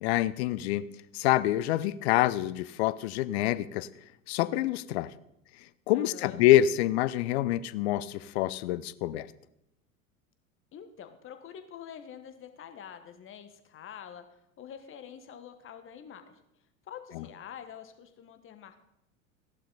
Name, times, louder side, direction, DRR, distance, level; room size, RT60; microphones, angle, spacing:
voice 1, 0.0-0.9 1.1-3.9 4.3-5.1 5.9-9.3 17.1-17.3, left 14 dB, 50° left, 18 dB, 0.7 m, -26 dB
voice 2, 5.9-6.4 10.7-14.2 14.6-16.4 16.9-18.8, left 8 dB, 30° left, 8 dB, 1.4 m, -46 dB
14.5 x 11.5 x 4.1 m, 0.81 s
figure-of-eight pair, 80°, 42 cm